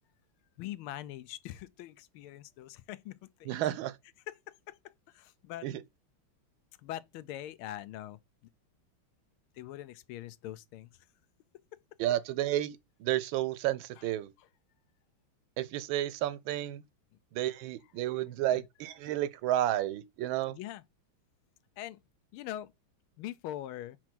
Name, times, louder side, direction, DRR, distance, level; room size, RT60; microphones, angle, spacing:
voice 1, 0.6-3.6 4.3-5.7 6.8-8.2 9.5-11.1 11.7-11.8 13.9-14.1 14.4-14.5 18.5-18.6 20.5-20.8 21.8-22.0 22.3-22.7 23.2-24.0, left 13 dB, 85° left, 1.5 m, -43 dB
voice 2, 3.5-3.9 5.6-5.7 12.0-14.3 15.6-16.8 17.3-20.6, right 13 dB, 75° right, 1.3 m, -31 dB
4.7 x 4.5 x 6.0 m
omnidirectional pair, 2.3 m